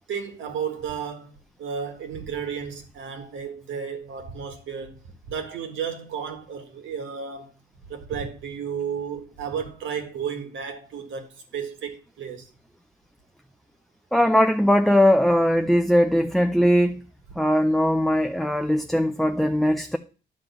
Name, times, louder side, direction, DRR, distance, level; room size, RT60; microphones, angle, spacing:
voice 1, 0.1-5.0 5.3-7.5 7.9-11.3 11.5-12.5, right 7 dB, 75° right, 1.8 m, -33 dB
voice 2, 14.1-17.0 17.4-20.0, equal, ahead, 0.5 m, -20 dB
10.5 x 3.7 x 6.9 m
cardioid pair, 90°, 20 cm